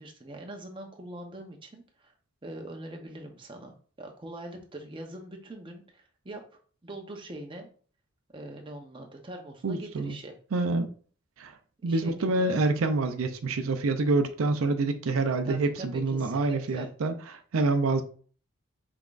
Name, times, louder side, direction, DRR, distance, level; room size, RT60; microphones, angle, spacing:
voice 1, 0.0-2.1 2.4-6.4 6.8-7.7 8.3-10.4 11.8-12.3 15.4-16.9, right 1 dB, 25° right, 0.7 m, -43 dB
voice 2, 9.6-10.2 10.5-10.9 11.4-11.6 11.8-18.0, right 3 dB, 80° right, 0.5 m, -27 dB
5.8 x 3.5 x 2.5 m
head